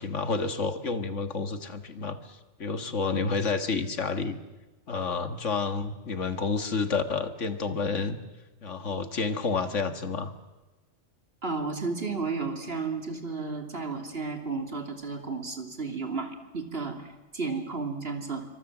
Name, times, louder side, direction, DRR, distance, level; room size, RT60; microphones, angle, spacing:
voice 1, 0.0-4.4 4.9-8.2 8.6-10.3, left 4 dB, 80° left, 9 dB, 2.0 m, -30 dB
voice 2, 11.4-18.4, right 4 dB, 55° right, 5 dB, 3.1 m, -33 dB
27.5 x 25.0 x 7.4 m, 1.2 s
omnidirectional pair, 1.2 m